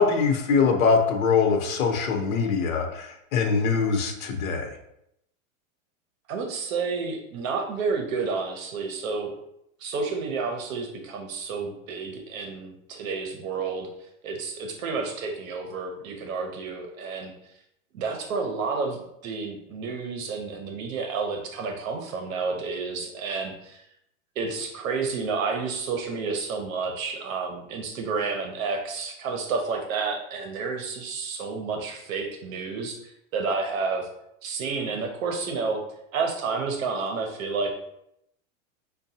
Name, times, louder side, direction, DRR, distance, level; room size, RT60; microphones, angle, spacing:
voice 1, 0.0-4.7, left 5 dB, 75° left, 2 dB, 0.8 m, -23 dB
voice 2, 6.3-9.3 9.8-13.9 14.2-17.3 17.9-23.8 24.4-34.1 34.4-35.8 36.1-37.7, right 4 dB, 75° right, 3 dB, 0.7 m, -30 dB
5.2 x 2.2 x 2.7 m, 0.78 s
supercardioid pair, 170°, 41 cm